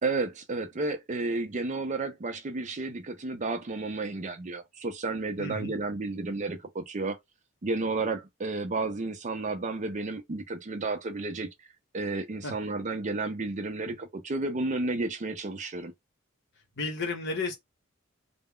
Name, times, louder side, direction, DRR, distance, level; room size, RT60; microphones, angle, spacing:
voice 1, 0.0-7.2 7.6-11.5 11.9-15.9, right 3 dB, 35° right, 0.5 m, -32 dB
voice 2, 5.4-5.8 12.4-12.5 16.8-17.6, left 3 dB, 55° left, 0.9 m, -32 dB
2.3 x 2.0 x 3.6 m
head